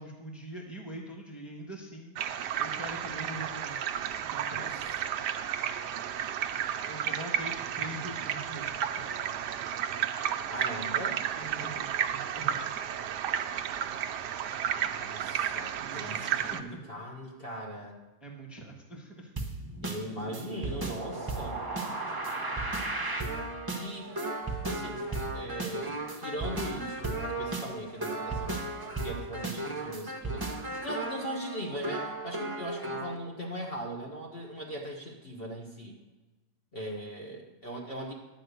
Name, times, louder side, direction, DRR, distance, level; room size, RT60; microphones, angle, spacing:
voice 1, 0.0-3.9 4.3-4.7 6.9-9.1 11.3-12.7 15.7-16.8 18.2-19.3, right 1 dB, ahead, -1 dB, 1.3 m, -43 dB
sound 1, 2.2-16.6, right 9 dB, 90° right, 1.2 m, -32 dB
voice 2, 4.5-4.9 10.5-11.2 15.0-18.0 19.8-21.6 23.7-24.2 24.7-28.6 29.0-36.0 36.7-38.1, equal, 40° left, -1 dB, 1.4 m, -40 dB
sound 2, 19.4-33.2, right 2 dB, 20° right, 0.8 m, -35 dB
11.5 x 5.0 x 8.1 m, 1.1 s
omnidirectional pair, 1.7 m